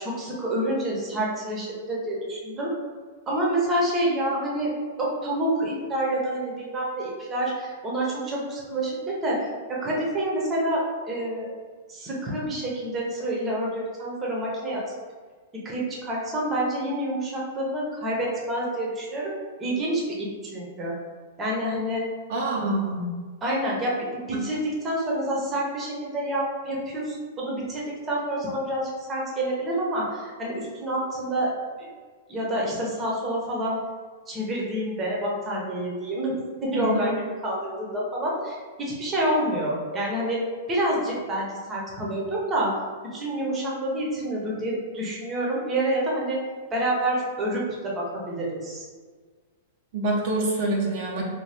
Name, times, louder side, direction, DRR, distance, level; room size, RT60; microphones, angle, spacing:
voice 1, 0.0-2.7 3.3-4.7 5.0-11.5 11.9-14.8 15.5-19.3 19.6-20.9 21.4-22.1 23.4-24.6 24.8-31.5 32.3-33.8 34.3-37.1 37.4-40.4 40.7-42.8 43.0-46.4 46.7-48.8, right 1 dB, 20° right, -4 dB, 0.7 m, -28 dB
voice 2, 22.3-23.1 24.3-24.4 36.7-37.1 49.9-51.2, right 2 dB, 55° right, -2 dB, 0.5 m, -26 dB
2.7 x 2.2 x 3.3 m, 1.5 s
hypercardioid pair, 150°, 0 cm